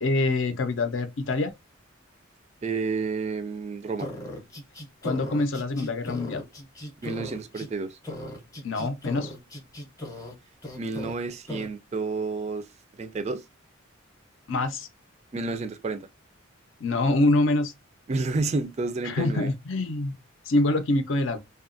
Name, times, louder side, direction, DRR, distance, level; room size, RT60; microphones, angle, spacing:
voice 1, 0.0-1.5 5.0-6.4 8.6-9.3 14.5-14.9 16.8-17.7 19.0-20.2 20.5-21.4, left 2 dB, 65° left, 0.5 m, -25 dB
voice 2, 2.6-4.1 7.0-8.0 10.8-12.7 13.0-13.4 15.3-16.1 18.1-19.5, right 3 dB, 30° right, 0.3 m, -30 dB
sound 1, 4.0-7.7 8.0-10.3 10.6-11.1 11.5-11.7, left 1 dB, 15° left, 0.7 m, -37 dB
2.8 x 2.3 x 2.5 m
head